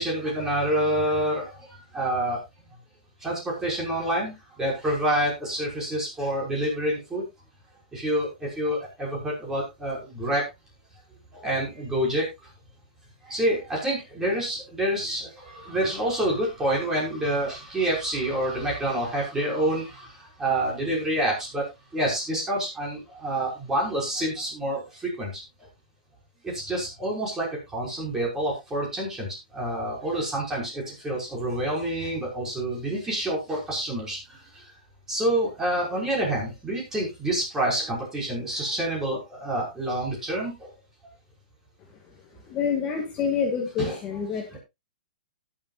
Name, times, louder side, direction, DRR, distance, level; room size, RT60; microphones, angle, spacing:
voice 1, 0.0-2.4 3.2-7.2 7.9-10.5 11.3-12.5 13.2-21.6 21.9-25.4 26.4-34.6 35.1-40.7 43.8-44.0 44.5-44.6, right 1 dB, 10° right, -3 dB, 5.9 m, -28 dB
voice 2, 42.5-44.6, left 6 dB, 25° left, 1 dB, 2.1 m, -27 dB
18.0 x 7.9 x 2.5 m, 0.22 s
hypercardioid pair, 150°, 5 cm